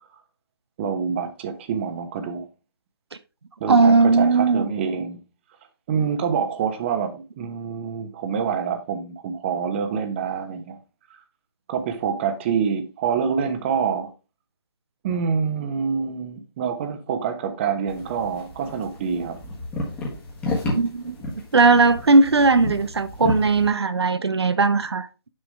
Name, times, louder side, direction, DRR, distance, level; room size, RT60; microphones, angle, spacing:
voice 1, 0.8-2.4 3.6-5.2 5.9-10.8 11.7-14.1 15.0-19.4, right 6 dB, 25° right, 1.0 m, -26 dB
voice 2, 3.7-4.6 20.7-21.1 21.5-25.1, right 3 dB, 80° right, 0.7 m, -18 dB
sound 1, 17.9-23.7, left 2 dB, 10° left, 1.4 m, -32 dB
6.5 x 6.0 x 3.3 m
figure-of-eight pair, 150°, 13 cm